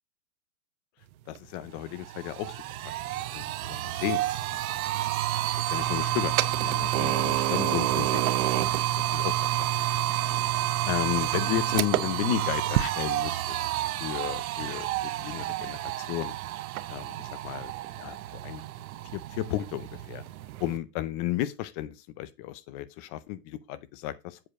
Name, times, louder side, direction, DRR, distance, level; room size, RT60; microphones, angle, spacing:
voice 1, 1.3-2.6 2.8-2.9 3.3-4.3 5.7-6.3 6.6-8.7 9.0-9.4 10.9-13.7 14.0-16.3 16.9-17.7 18.0-18.2 18.4-18.6 19.1-20.2 20.6-24.4, left 14 dB, 25° left, 0.5 m, -33 dB
sound 1, 1.3-1.4 1.8-20.8, right 13 dB, 60° right, 0.9 m, -29 dB
7.7 x 4.5 x 5.0 m
hypercardioid pair, 130°, 49 cm